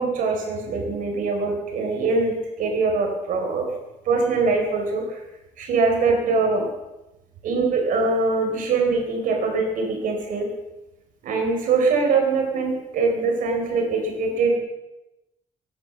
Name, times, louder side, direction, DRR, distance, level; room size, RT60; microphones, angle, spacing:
voice 1, 0.0-3.7 4.1-5.0 5.6-6.7 7.4-10.5 11.2-14.6, right 4 dB, 85° right, 2 dB, 4.2 m, -22 dB
18.0 x 10.5 x 7.1 m, 0.99 s
cardioid pair, 175°, 13 cm